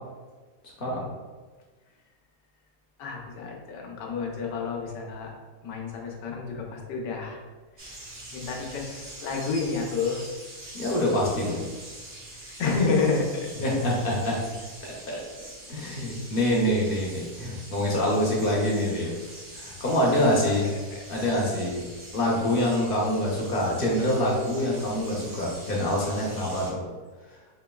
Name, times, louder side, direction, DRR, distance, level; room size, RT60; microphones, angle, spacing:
voice 1, 3.0-5.3 5.6-7.4 7.8-7.9 8.3-10.2 12.6-13.5 20.4-20.5 20.9-21.0, left 4 dB, 85° left, 0 dB, 1.3 m, -29 dB
sound 1, 7.8-26.7, right 1 dB, 45° right, 0.9 m, -44 dB
voice 2, 10.7-11.7 13.6-14.4 14.8-15.2 15.7-19.1 19.5-20.7 21.1-21.8 22.1-26.8, left 1 dB, 45° left, -3 dB, 0.7 m, -25 dB
5.2 x 2.9 x 2.3 m, 1.4 s
omnidirectional pair, 1.8 m